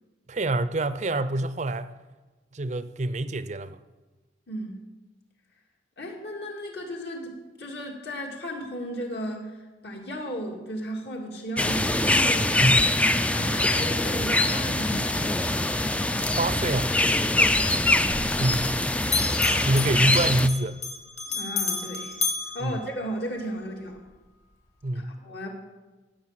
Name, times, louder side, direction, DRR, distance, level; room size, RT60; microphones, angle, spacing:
voice 1, 0.3-1.9 2.5-3.8 12.6-12.9 16.4-16.9 18.4-18.8 19.6-20.8 22.6-22.8 24.8-25.2, right 1 dB, 40° right, 13 dB, 0.5 m, -26 dB
voice 2, 6.0-9.6 9.8-12.6 13.0-15.5 17.2-18.5 21.3-22.2 22.5-24.0 24.9-25.5, equal, 60° left, 0 dB, 2.4 m, -35 dB
sound 1, 11.6-20.5, left 1 dB, 5° left, 0.4 m, -23 dB
Bell, 19.0-23.5, left 5 dB, 40° left, 1.8 m, -33 dB
15.5 x 6.2 x 7.5 m, 1.2 s
head